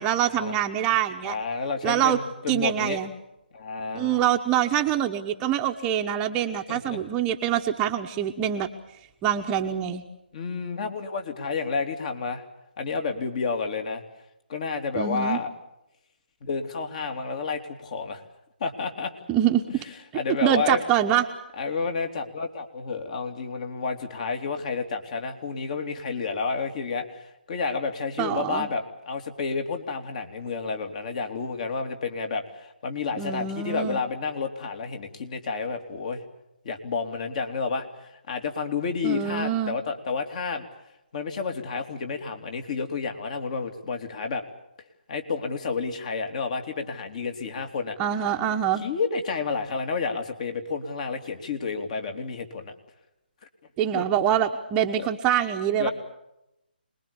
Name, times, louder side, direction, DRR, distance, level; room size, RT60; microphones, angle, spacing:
voice 1, 0.0-1.4 1.8-2.2 2.5-3.1 3.9-8.7 9.2-10.0 15.0-15.4 19.3-19.8 20.4-21.2 28.2-28.7 33.2-34.0 39.0-39.8 48.0-48.8 53.8-55.9, right 10 dB, 15° right, 4 dB, 1.1 m, -25 dB
voice 2, 1.2-3.0 3.5-4.2 6.7-7.0 10.3-12.4 12.8-14.0 14.5-15.5 16.4-18.2 18.6-19.1 20.1-20.8 21.6-36.2 36.6-40.6 41.1-44.4 45.1-48.0 48.8-52.7 53.9-54.1 55.0-55.1 55.8-55.9, left 4 dB, 45° left, 6 dB, 3.1 m, -30 dB
27.0 x 21.0 x 7.2 m, 0.87 s
hypercardioid pair, 155°, 6 cm